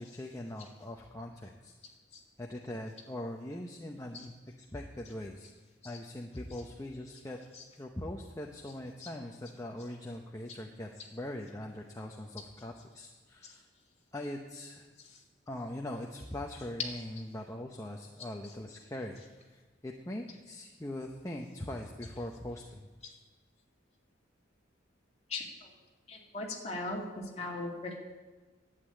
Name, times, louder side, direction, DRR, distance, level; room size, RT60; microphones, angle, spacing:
voice 1, 0.0-1.7 2.4-5.5 5.8-7.4 7.8-13.7 14.1-14.9 15.5-19.2 19.5-22.9, left 1 dB, 15° left, 1 dB, 0.7 m, -41 dB
voice 2, 26.1-27.0 27.4-28.0, left 2 dB, 30° left, -1 dB, 2.2 m, -37 dB
11.0 x 8.3 x 8.8 m, 1.3 s
head